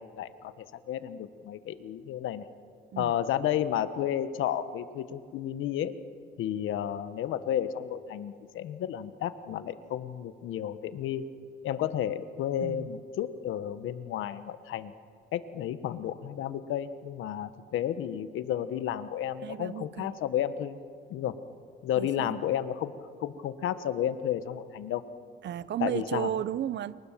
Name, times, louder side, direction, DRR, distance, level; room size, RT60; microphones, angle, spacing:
voice 1, 0.0-2.5 3.0-6.0 6.4-11.2 11.6-14.9 15.3-20.8 21.1-21.3 21.8-22.9 23.2-25.0 25.8-26.3, left 10 dB, 85° left, 12 dB, 1.4 m, -32 dB
voice 2, 19.4-20.1 22.0-22.4 25.4-27.0, right 10 dB, 65° right, 18 dB, 0.9 m, -34 dB
29.5 x 24.5 x 7.5 m, 2.3 s
cardioid pair, 90°, 20 cm